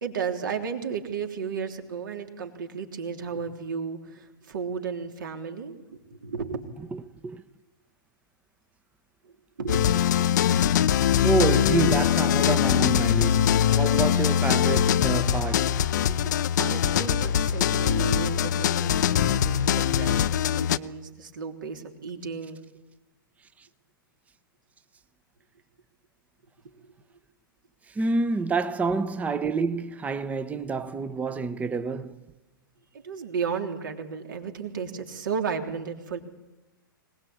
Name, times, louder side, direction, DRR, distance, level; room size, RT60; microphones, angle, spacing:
voice 1, 0.0-5.7 6.1-6.6 9.2-9.3 9.6-10.7 16.2-22.6 26.7-26.9 32.9-36.2, right 6 dB, 65° right, 3.3 m, -34 dB
voice 2, 6.9-7.4 11.2-15.8 16.1-16.2 23.6-23.7 27.9-32.2, right 4 dB, 10° right, 1.0 m, -28 dB
sound 1, 9.7-20.8, left 9 dB, 55° left, 0.7 m, -22 dB
25.0 x 19.0 x 8.8 m
figure-of-eight pair, 110°, 12 cm